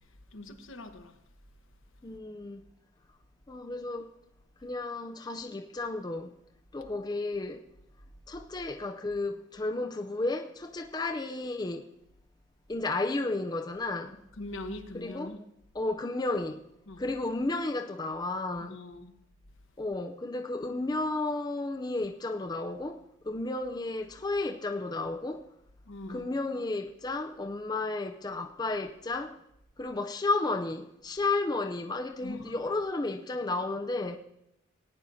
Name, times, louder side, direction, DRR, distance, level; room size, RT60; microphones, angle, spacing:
voice 1, 0.3-1.2 14.4-15.4 16.9-17.0 18.7-19.1 25.9-26.3 32.2-32.6, left 1 dB, 75° left, 1.1 m, -42 dB
voice 2, 2.0-2.6 3.5-4.1 4.6-6.3 6.7-7.7 8.3-11.9 12.7-14.2 14.9-15.3 15.7-16.6 17.0-18.8 19.8-25.4 26.1-29.4 29.8-34.2, left 2 dB, 20° left, 0.4 m, -33 dB
18.5 x 9.8 x 2.7 m
head